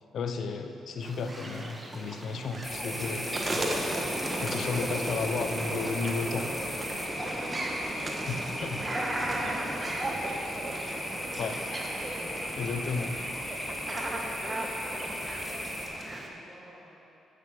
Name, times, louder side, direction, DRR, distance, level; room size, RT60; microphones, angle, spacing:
voice 1, 0.1-3.9 4.4-6.6 8.3-8.8 11.4-11.6 12.5-13.1, left 4 dB, 65° left, 7 dB, 0.7 m, -33 dB
sound 1, 1.0-16.3, right 1 dB, 25° right, 1.4 m, -35 dB
sound 2, 2.6-15.9, left 1 dB, 10° left, 1.9 m, -37 dB
Wind instrument woodwind instrument, 3.5-9.9, right 2 dB, 50° right, 2.1 m, -51 dB
voice 2, 7.3-12.2 12.6-17.0, equal, 5° right, -9 dB, 2.4 m, -49 dB
8.4 x 8.0 x 5.9 m, 2.8 s
supercardioid pair, 55°, 0 cm